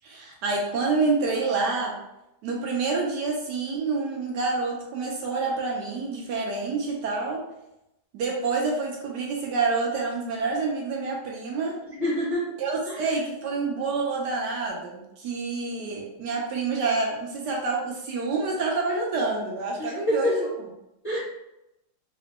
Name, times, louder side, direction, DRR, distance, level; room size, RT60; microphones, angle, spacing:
voice 1, 0.0-2.0 2.4-7.4 8.1-11.8 12.6-20.5, right 4 dB, 75° right, -1 dB, 1.1 m, -27 dB
voice 2, 12.0-12.5 12.8-13.1 19.8-20.5 21.0-21.2, left 1 dB, 35° left, -8 dB, 0.7 m, -27 dB
3.9 x 2.1 x 2.9 m, 0.88 s
omnidirectional pair, 2.0 m